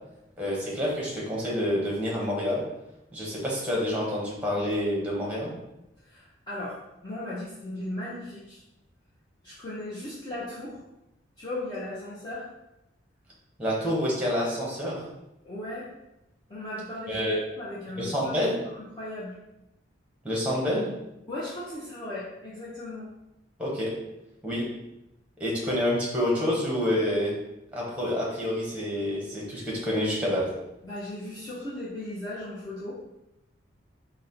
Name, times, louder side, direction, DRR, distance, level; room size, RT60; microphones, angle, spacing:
voice 1, 0.4-2.6 3.1-5.5 13.6-15.0 17.1-17.4 18.0-18.6 20.2-20.9 23.6-23.9 24.4-24.7 25.4-27.3 27.7-30.5, left 1 dB, 5° right, -5 dB, 1.0 m, -28 dB
voice 2, 6.0-8.6 9.4-10.8 11.4-12.5 15.4-15.9 16.5-17.3 17.6-19.3 21.3-23.1 30.8-33.0, left 1 dB, 20° left, -9 dB, 0.6 m, -37 dB
4.1 x 2.1 x 3.9 m, 0.91 s
head